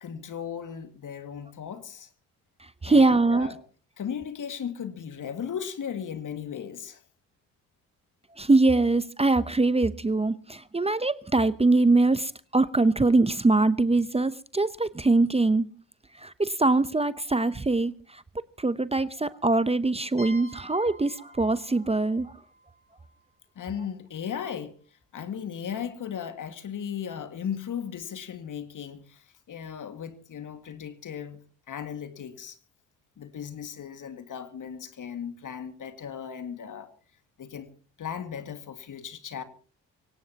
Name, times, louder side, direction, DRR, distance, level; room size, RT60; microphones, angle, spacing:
voice 1, 0.0-2.1 2.8-3.6 4.0-7.0 23.6-24.7 25.1-31.4 31.7-32.6 33.2-36.9 37.4-37.7 38.0-39.4, left 8 dB, 60° left, 2.1 m, -36 dB
voice 2, 2.8-3.5 8.4-15.7 16.2-18.2 18.6-22.3, right 3 dB, 15° right, 0.8 m, -23 dB
sound 1, 20.2-23.8, equal, 35° left, 6.7 m, -49 dB
23.5 x 18.0 x 2.9 m
supercardioid pair, 55°, 36 cm